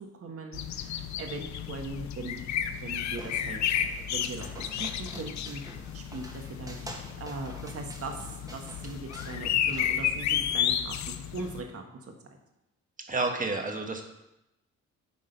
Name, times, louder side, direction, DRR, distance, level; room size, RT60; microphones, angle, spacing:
voice 1, 0.2-3.6 4.0-5.6 5.9-6.9 7.2-10.9 11.3-11.8, right 3 dB, 50° right, 3 dB, 1.5 m, -40 dB
sound 1, 0.5-11.6, left 9 dB, 65° left, 0.6 m, -32 dB
sound 2, 2.5-10.6, equal, 10° right, 1.8 m, -48 dB
voice 2, 13.1-14.0, right 3 dB, 25° right, 3 dB, 1.4 m, -30 dB
9.7 x 3.9 x 5.3 m, 0.89 s
cardioid pair, 90°, 30 cm